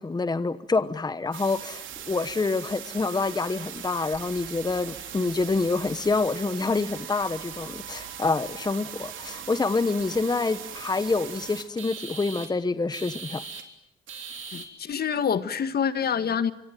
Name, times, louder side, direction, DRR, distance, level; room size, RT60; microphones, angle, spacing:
voice 1, 0.0-13.4, left 3 dB, 20° left, 13 dB, 1.1 m, -27 dB
sound 1, 1.3-12.5 12.9-13.6 14.1-14.7, right 8 dB, 75° right, 3.6 m, -39 dB
voice 2, 14.5-16.5, left 7 dB, 50° left, 12 dB, 1.7 m, -26 dB
25.5 x 25.0 x 9.2 m, 0.77 s
cardioid pair, 90°, 20 cm